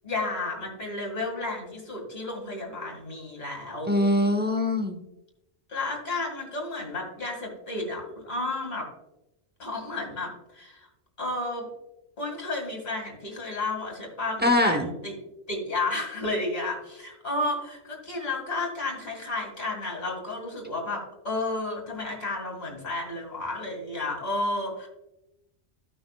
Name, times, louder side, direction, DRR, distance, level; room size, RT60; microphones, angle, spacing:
voice 1, 0.0-3.9 5.7-8.9 9.6-10.9 11.2-11.7 12.2-15.2 15.5-24.9, left 2 dB, 40° left, -1 dB, 2.2 m, -32 dB
voice 2, 3.9-5.0 14.4-14.9, left 1 dB, 10° right, 4 dB, 0.7 m, -23 dB
14.5 x 5.9 x 2.4 m, 0.92 s
omnidirectional pair, 1.1 m